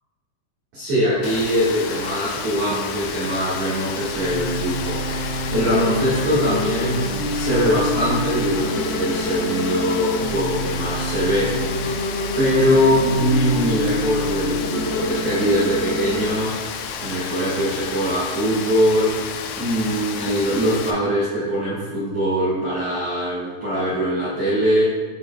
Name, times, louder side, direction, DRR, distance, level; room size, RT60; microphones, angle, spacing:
voice 1, 0.7-11.6 12.4-16.6 17.0-19.3 19.5-24.8, equal, 70° right, -11 dB, 1.8 m, -22 dB
Rain, 1.2-20.9, left 7 dB, 90° left, 2.6 m, -32 dB
sound 1, 4.2-16.2, equal, 75° left, 2.0 m, -27 dB
12.0 x 4.2 x 2.2 m, 1.4 s
omnidirectional pair, 5.9 m